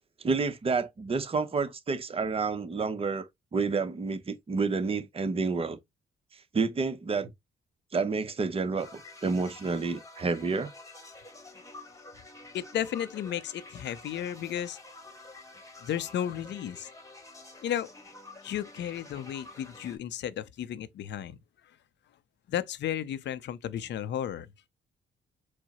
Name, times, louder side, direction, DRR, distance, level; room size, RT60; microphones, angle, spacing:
voice 1, 0.2-5.8 6.5-7.3 7.9-10.7, right 4 dB, 30° right, 0.7 m, -29 dB
sound 1, 8.8-20.0, left 2 dB, 15° left, 1.2 m, -49 dB
voice 2, 12.5-14.8 15.8-16.9 17.6-17.9 18.4-21.4 22.5-24.7, left 10 dB, 65° left, 0.5 m, -33 dB
4.7 x 2.0 x 4.1 m
cardioid pair, 90°, 20 cm